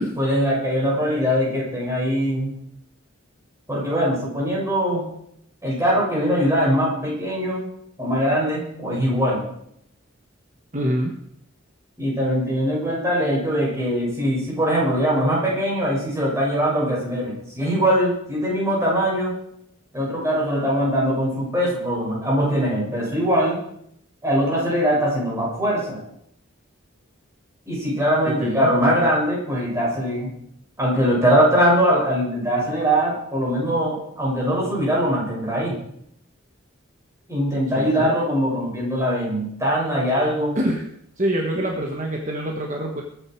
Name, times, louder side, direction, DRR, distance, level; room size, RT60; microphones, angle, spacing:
voice 1, 0.2-2.5 3.7-5.1 5.6-7.7 8.0-9.5 12.0-19.3 19.9-23.6 24.2-26.0 27.7-30.4 30.8-35.8 37.3-40.6, equal, 15° right, -4 dB, 6.5 m, -22 dB
voice 2, 10.7-11.1 28.2-28.7 37.7-38.1 40.5-40.8 41.2-43.0, right 1 dB, 35° right, 1 dB, 1.5 m, -25 dB
21.5 x 9.5 x 4.8 m, 0.73 s
head